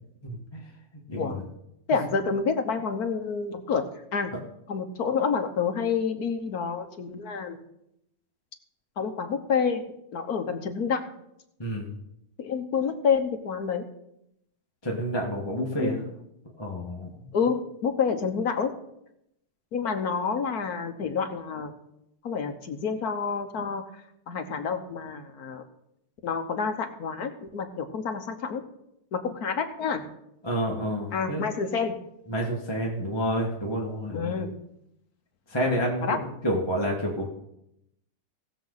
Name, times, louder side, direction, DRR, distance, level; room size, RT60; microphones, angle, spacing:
voice 1, 0.2-0.6 1.1-1.4 11.6-11.9 14.8-16.0 16.6-17.1 30.4-31.4 32.3-34.3 35.5-37.3, equal, 15° left, -3 dB, 1.6 m, -29 dB
voice 2, 1.9-3.8 4.1-4.3 4.7-7.6 9.0-9.8 10.1-11.0 12.4-13.9 15.7-16.0 17.3-18.7 19.7-21.7 22.2-23.8 24.3-25.6 26.2-28.6 29.1-30.1 31.1-32.0 34.1-34.6 36.0-36.2, left 6 dB, 60° left, 6 dB, 1.5 m, -28 dB
18.5 x 7.2 x 4.0 m, 0.79 s
omnidirectional pair, 1.9 m